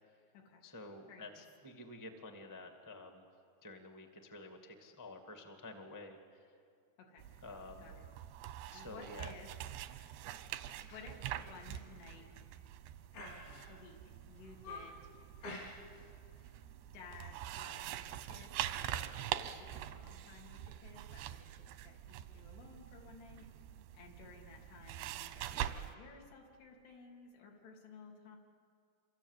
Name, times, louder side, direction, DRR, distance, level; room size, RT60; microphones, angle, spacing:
voice 1, 0.6-3.3 3.6-6.6 7.4-7.9 8.7-9.3, left 2 dB, 15° left, 4 dB, 0.8 m, -51 dB
sound 1, 7.2-25.9, right 12 dB, 90° right, 3.0 m, -45 dB
voice 2, 8.7-9.5 10.9-12.3 13.7-14.0 14.3-15.1 16.9-23.5 23.9-25.5 25.8-28.4, left 4 dB, 85° left, 0 dB, 5.0 m, -56 dB
sound 2, 8.7-9.1 9.5-9.8 10.3-10.5 10.9-11.1 11.4-11.5 12.2-12.6 13.1-13.9 14.3-15.0 15.4-16.1 16.4-16.6, left 2 dB, 65° left, 5.6 m, -50 dB
28.0 x 25.0 x 8.3 m, 2.4 s
omnidirectional pair, 4.6 m